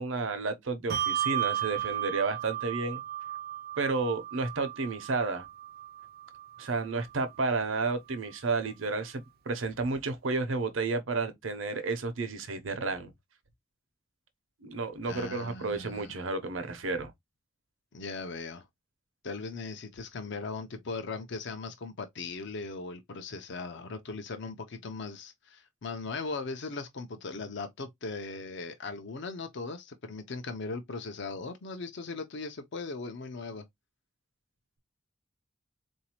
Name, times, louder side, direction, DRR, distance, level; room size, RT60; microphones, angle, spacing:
voice 1, 0.0-3.0 3.8-5.5 6.6-13.1 14.6-17.1, right 3 dB, 85° right, 0.8 m, -31 dB
Bell, 0.9-7.8, right 11 dB, 50° right, 0.4 m, -35 dB
voice 2, 15.0-16.2 17.9-18.6 19.2-33.6, left 3 dB, 65° left, 0.6 m, -39 dB
4.0 x 2.6 x 2.9 m
head